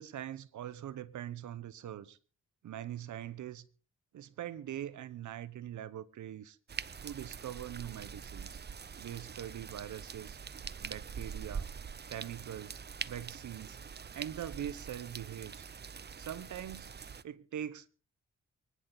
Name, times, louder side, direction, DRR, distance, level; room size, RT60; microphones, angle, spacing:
voice 1, 0.0-2.2 2.6-3.7 4.1-6.6 7.0-8.6 9.0-10.4 10.8-11.7 12.1-12.8 13.1-13.8 14.1-15.7 16.2-16.9 17.2-17.9, right 11 dB, 85° right, 0.9 m, -42 dB
sound 1, 6.7-17.2, right 6 dB, 35° right, 0.6 m, -44 dB
24.5 x 10.0 x 3.9 m
cardioid pair, 70°, 29 cm